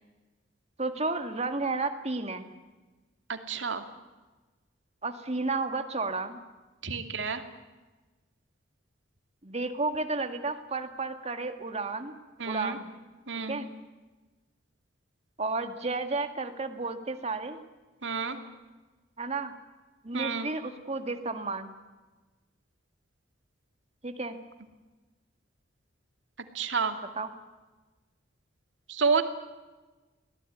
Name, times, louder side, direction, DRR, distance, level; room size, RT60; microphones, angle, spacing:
voice 1, 0.8-2.5 5.0-6.4 9.4-12.1 12.5-12.9 13.5-13.7 15.4-17.6 19.2-19.5 20.0-21.7 24.0-24.4 27.1-27.3, right 3 dB, 35° right, 7 dB, 2.0 m, -32 dB
voice 2, 3.3-3.8 6.8-7.4 12.4-12.8 13.3-13.6 18.0-18.4 20.1-20.5 26.5-27.0 28.9-29.2, right 5 dB, 70° right, 6 dB, 2.5 m, -29 dB
24.0 x 18.0 x 9.4 m, 1.2 s
head